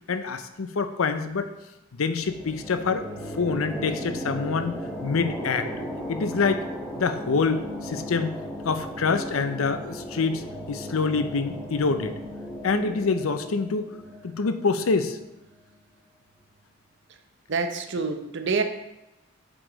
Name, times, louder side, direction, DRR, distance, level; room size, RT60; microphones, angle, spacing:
voice 1, 0.1-1.5 1.9-3.1 3.4-4.7 5.0-5.7 6.1-6.6 7.0-8.3 8.6-12.2 12.6-13.9 14.2-15.2, left 4 dB, 80° left, 9 dB, 0.6 m, -26 dB
sound 1, 2.1-15.5, equal, 15° left, 1.9 m, -36 dB
voice 2, 3.5-4.1 17.5-18.6, right 4 dB, 55° right, 6 dB, 0.7 m, -28 dB
7.6 x 4.9 x 3.9 m, 0.95 s
head